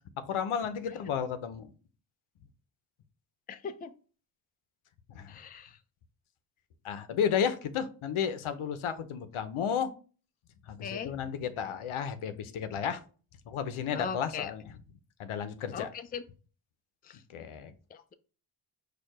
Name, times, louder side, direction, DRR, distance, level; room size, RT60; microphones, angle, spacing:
voice 1, 0.2-1.7 5.1-5.4 6.8-9.9 10.7-13.0 13.5-14.8 15.2-15.9 17.3-17.7, left 7 dB, 75° left, 11 dB, 0.7 m, -33 dB
voice 2, 3.5-3.9 5.3-5.7 10.8-11.1 13.9-14.5 15.7-15.9 16.1-16.2 17.9-18.1, left 6 dB, 20° left, 9 dB, 0.3 m, -38 dB
4.5 x 2.5 x 4.8 m, 0.37 s
cardioid pair, 75°, 50 cm